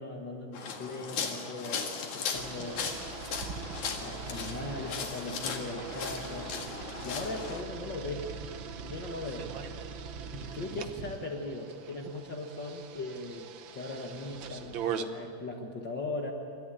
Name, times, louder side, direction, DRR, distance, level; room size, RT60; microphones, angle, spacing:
voice 1, 0.0-2.8 3.9-6.5 7.0-8.3 8.8-9.5 10.3-16.3, left 2 dB, 45° left, 1 dB, 1.8 m, -39 dB
sound 1, 0.5-7.6, left 6 dB, 75° left, 3.2 m, -37 dB
sound 2, 2.3-15.1, right 7 dB, 70° right, 1.2 m, -41 dB
29.5 x 13.5 x 9.0 m, 2.5 s
omnidirectional pair, 3.4 m